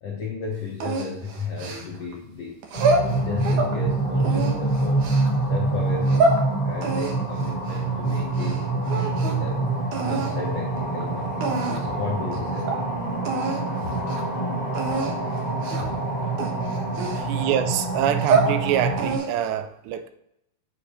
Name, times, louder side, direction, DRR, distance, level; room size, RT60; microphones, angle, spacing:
voice 1, 0.0-2.6 3.1-5.0 5.5-6.4 6.6-9.6 10.0-13.0 15.8-15.9 16.2-16.5 17.1-17.4, left 3 dB, 70° left, 1.4 m, -34 dB
sound 1, 0.8-2.1 2.6-3.8 4.2-5.3 5.9-6.4 6.8-8.6 8.8-9.5 9.9-10.3 11.0-11.1 11.4-11.9 12.3-12.4 12.7-12.8 13.2-13.6 14.0-14.2 14.7-15.1 15.6-16.0 16.4-17.6 18.0-18.6 19.0-19.5, right 3 dB, 65° right, 2.2 m, -26 dB
sound 2, 2.7-19.2, right 2 dB, 30° left, 2.3 m, -26 dB
voice 2, 17.1-20.1, right 10 dB, 85° right, 2.9 m, -25 dB
9.0 x 7.5 x 5.0 m
omnidirectional pair, 5.0 m